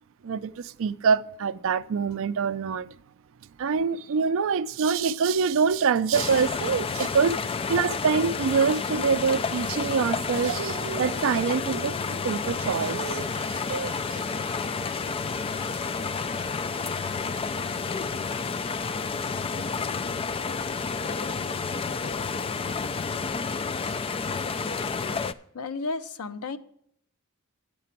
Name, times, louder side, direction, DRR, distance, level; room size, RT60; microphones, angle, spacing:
voice 1, 0.2-3.0 3.6-14.0, right 5 dB, 65° right, 0.4 m, -25 dB
sound 1, 6.1-25.3, left 5 dB, 25° left, 0.3 m, -30 dB
Applause / Crowd, 11.9-20.1, equal, 45° left, 4.9 m, -48 dB
voice 2, 25.5-26.6, left 3 dB, 85° left, 0.6 m, -32 dB
9.5 x 6.7 x 5.8 m
head